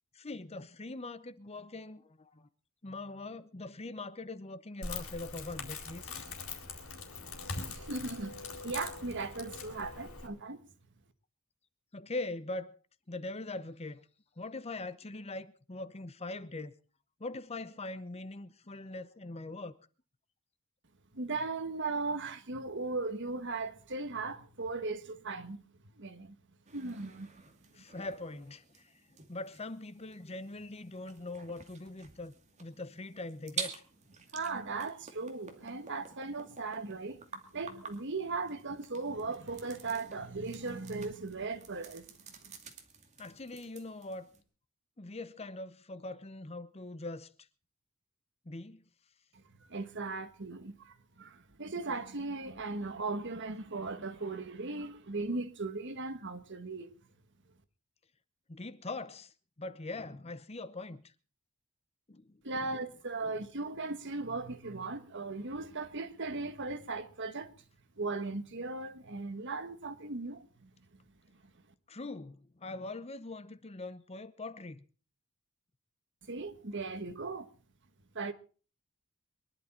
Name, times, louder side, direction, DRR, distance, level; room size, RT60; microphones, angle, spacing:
voice 1, 0.1-2.5 2.8-6.2 11.9-12.7 13.1-14.0 14.4-16.7 17.2-19.8 27.7-28.9 29.3-32.3 32.6-33.8 43.2-44.3 45.0-47.3 48.5-48.8 58.5-59.3 59.6-61.0 62.1-62.7 63.2-63.3 71.9-74.9, left 2 dB, 30° left, 0.8 m, -42 dB
Crackle, 4.8-10.3, left 4 dB, 65° left, 4.3 m, -42 dB
voice 2, 7.4-10.6 21.1-25.6 26.0-26.3 26.7-27.3 34.3-37.2 37.5-42.1 42.4-42.5 49.3-56.9 62.4-67.5 68.0-70.7 76.3-77.5 78.1-78.3, right 3 dB, 55° right, 1.5 m, -38 dB
sound 1, 26.7-44.4, right 6 dB, 30° right, 2.3 m, -49 dB
23.5 x 11.5 x 4.4 m
head